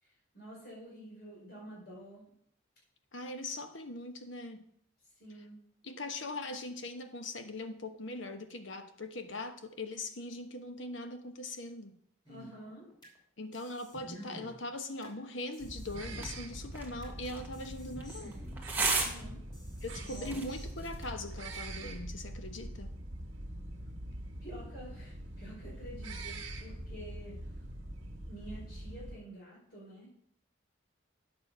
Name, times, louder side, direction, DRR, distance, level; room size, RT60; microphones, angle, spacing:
voice 1, 0.0-2.3 5.2-5.6 12.3-12.9 19.0-19.4 20.1-20.4 24.4-27.6 28.3-30.1, right 1 dB, 50° left, -5 dB, 5.2 m, -49 dB
voice 2, 3.1-4.7 5.8-11.9 13.4-18.4 19.8-22.9, left 2 dB, 70° left, 7 dB, 1.1 m, -41 dB
sound 1, 12.3-13.2 13.5-15.2 15.5-17.2 17.5-19.2 19.5-21.2 21.5-21.6, equal, 20° left, 3.1 m, -51 dB
sound 2, 15.6-29.2, right 1 dB, 70° right, 1.8 m, -44 dB
sound 3, 16.1-21.1, right 3 dB, 10° right, 1.3 m, -37 dB
9.6 x 7.1 x 5.5 m, 0.66 s
head